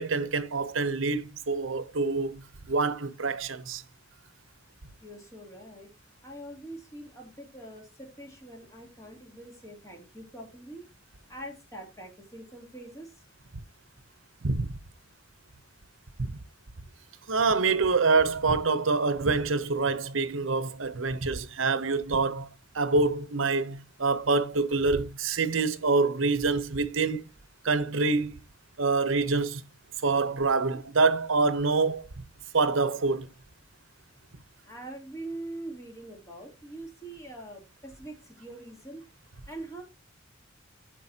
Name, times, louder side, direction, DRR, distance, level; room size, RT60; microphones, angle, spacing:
voice 1, 0.0-3.8 14.4-14.7 16.2-16.4 17.3-22.5 22.7-27.2 27.6-28.4 28.8-29.6 30.0-32.1 32.5-33.3, right 3 dB, 75° right, 0.9 m, -26 dB
voice 2, 5.0-5.9 6.2-10.8 11.3-13.1 34.6-39.0 39.5-39.8, right 1 dB, 15° left, 2.9 m, -43 dB
10.0 x 7.3 x 2.8 m
head